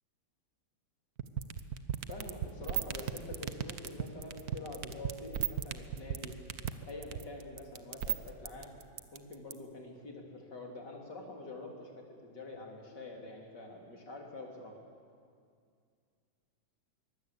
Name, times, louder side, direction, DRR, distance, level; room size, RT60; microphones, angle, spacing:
sound 1, 1.2-9.5, right 10 dB, 55° right, 1.3 m, -34 dB
voice 1, 2.1-6.4 6.8-8.7 9.1-14.7, left 2 dB, 60° left, 1 dB, 3.9 m, -46 dB
23.5 x 20.0 x 8.5 m, 2.2 s
omnidirectional pair, 2.1 m